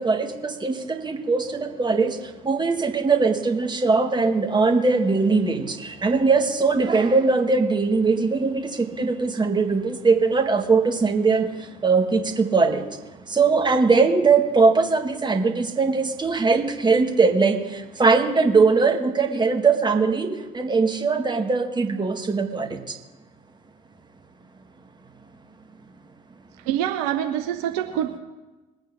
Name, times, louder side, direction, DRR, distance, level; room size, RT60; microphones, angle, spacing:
voice 1, 0.0-13.0 13.3-23.0, right 4 dB, 20° right, 5 dB, 1.9 m, -21 dB
voice 2, 26.6-28.2, right 11 dB, 70° right, 6 dB, 1.0 m, -25 dB
21.5 x 8.9 x 4.0 m, 1.1 s
hypercardioid pair, 60°, 20 cm